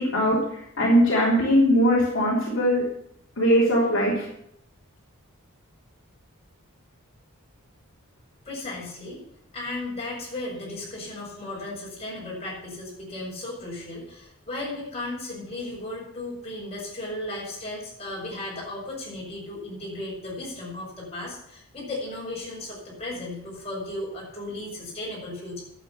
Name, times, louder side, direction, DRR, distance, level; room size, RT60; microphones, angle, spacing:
voice 1, 0.0-2.8 3.4-4.3, equal, 60° left, -5 dB, 3.3 m, -21 dB
voice 2, 8.4-9.2 9.5-25.6, left 2 dB, 30° left, -4 dB, 5.5 m, -35 dB
11.0 x 8.1 x 6.9 m, 0.75 s
head